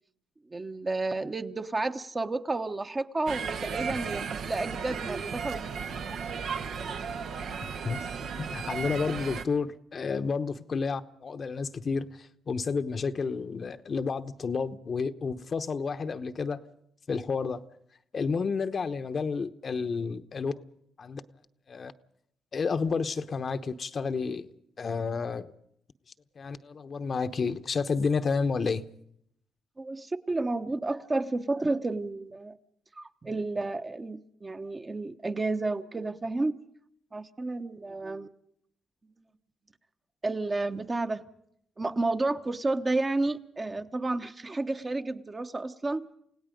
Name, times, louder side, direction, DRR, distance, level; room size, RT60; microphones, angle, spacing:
voice 1, 0.5-5.6 6.1-6.2 29.8-32.6 32.9-36.5 37.1-38.3 40.2-41.2 41.8-46.1, right 2 dB, 30° right, 8 dB, 1.1 m, -31 dB
sound 1, 3.3-9.4, right 6 dB, 70° right, 1.0 m, -35 dB
voice 2, 8.4-16.6 17.1-17.6 18.1-20.6 21.0-21.2 21.7-21.9 22.5-25.5 26.4-28.8, left 5 dB, 50° left, 10 dB, 0.9 m, -30 dB
29.0 x 17.0 x 5.2 m, 0.72 s
supercardioid pair, 55°, 0 cm